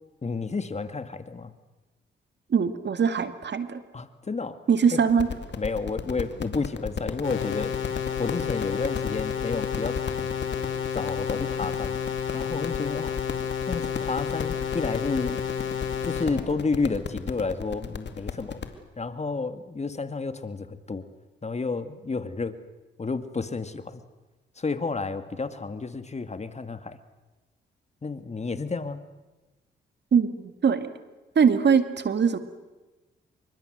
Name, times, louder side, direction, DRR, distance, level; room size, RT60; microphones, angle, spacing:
voice 1, 0.2-1.5 3.9-4.6 4.9-5.0 5.6-7.7 8.2-10.3 10.9-12.0 12.3-13.2 13.7-15.4 16.0-18.6 19.0-21.1 21.4-22.6 23.0-24.0 24.6-27.0 28.0-29.0, left 4 dB, 35° left, 10 dB, 2.0 m, -31 dB
voice 2, 2.5-3.8 4.7-5.3 30.1-30.9 31.4-32.4, right 6 dB, 60° right, 10 dB, 2.1 m, -22 dB
sound 1, 5.1-18.7, left 6 dB, 60° left, 2.4 m, -35 dB
sound 2, 7.2-16.2, left 8 dB, 75° left, 5.3 m, -31 dB
26.5 x 24.0 x 7.9 m, 1.1 s
cardioid pair, 70°, 20 cm